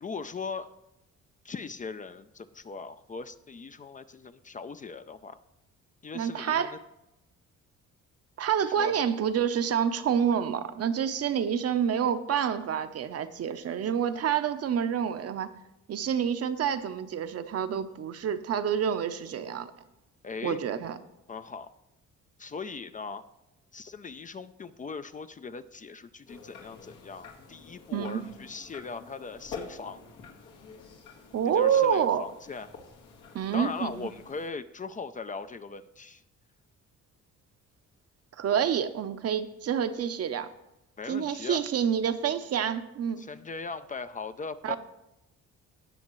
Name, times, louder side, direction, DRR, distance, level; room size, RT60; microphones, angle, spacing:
voice 1, 0.0-0.7 1.4-5.4 6.0-6.8 8.6-8.9 20.2-20.6 21.3-21.7 22.4-23.3 23.7-30.0 31.5-32.7 33.5-36.2 41.0-41.6 43.2-44.8, left 4 dB, 25° left, 11 dB, 0.4 m, -39 dB
voice 2, 6.1-6.7 8.4-15.5 15.9-19.7 20.4-21.0 27.9-28.2 31.3-32.2 33.3-34.1 38.4-40.5 41.1-43.2 44.6-44.8, right 8 dB, 55° right, 11 dB, 0.8 m, -28 dB
sound 1, 26.3-34.5, left 5 dB, 85° left, 1.8 m, -48 dB
17.5 x 6.4 x 3.1 m, 0.89 s
cardioid pair, 90°, 30 cm